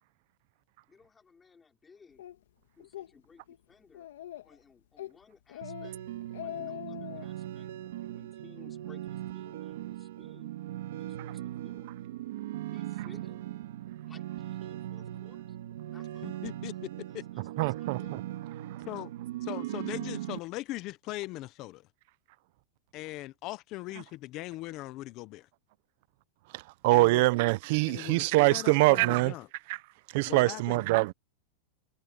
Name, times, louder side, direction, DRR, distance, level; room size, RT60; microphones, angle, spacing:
voice 1, 0.9-2.3 2.8-4.1 4.4-6.0 6.4-7.7 8.0-10.5 10.9-11.9 12.7-13.4 14.0-15.6 15.9-18.3, left 5 dB, 10° left, 4.6 m, -59 dB
Speech, 2.2-2.3 2.8-3.1 3.5-3.6 3.9-4.6 5.0-5.2 5.5-5.9 6.2-7.3, left 12 dB, 80° left, 1.8 m, -41 dB
sound 1, 5.6-20.4, right 13 dB, 70° right, 2.9 m, -39 dB
voice 2, 16.2-16.7 17.1-17.2 18.9-19.1 19.4-21.8 22.9-25.5 26.9-27.2 27.8-28.2 28.5-29.5 30.3-30.8, left 18 dB, 30° left, 0.6 m, -40 dB
voice 3, 17.6-18.0 26.5-29.3 29.7-29.8 30.1-31.1, right 22 dB, 45° right, 0.5 m, -24 dB
supercardioid pair, 175°, 0 cm